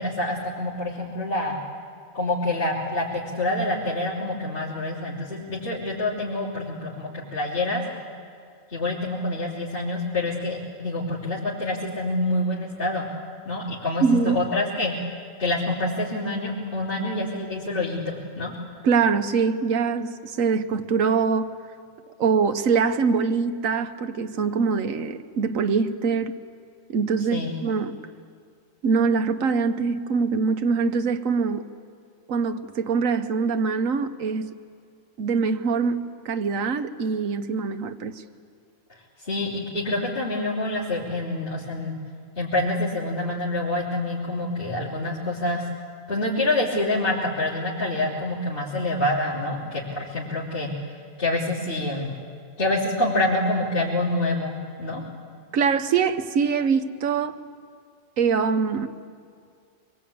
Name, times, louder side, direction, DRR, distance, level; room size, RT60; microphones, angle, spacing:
voice 1, 0.0-1.5 2.1-7.8 8.7-13.1 13.4-14.9 15.4-18.5 27.3-27.5 39.2-41.9 42.4-45.6 46.1-50.7 51.2-52.1 52.6-55.0, left 2 dB, 40° left, 3.5 m, -27 dB
voice 2, 14.0-14.4 18.8-21.5 22.2-26.3 26.9-28.0 28.8-31.7 32.3-34.5 35.2-38.2 55.5-57.4 58.2-58.9, right 5 dB, 85° right, 1.3 m, -23 dB
24.0 x 22.5 x 8.7 m
omnidirectional pair, 1.4 m